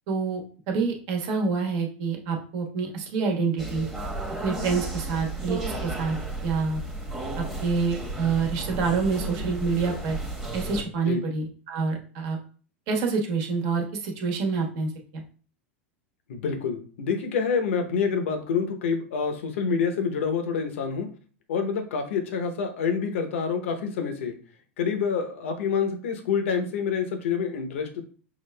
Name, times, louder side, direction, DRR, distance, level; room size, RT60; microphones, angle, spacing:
voice 1, 0.1-3.9 4.4-6.2 6.4-6.8 7.4-10.2 10.5-12.4 12.9-15.2, right 4 dB, 55° right, 2 dB, 1.1 m, -27 dB
sound 1, 3.6-10.8, right 2 dB, 5° right, 1.0 m, -33 dB
voice 2, 16.3-21.1 21.5-24.3 24.8-28.0, left 6 dB, 75° left, 5 dB, 0.8 m, -27 dB
5.7 x 2.4 x 2.2 m, 0.40 s
hypercardioid pair, 100°, 7 cm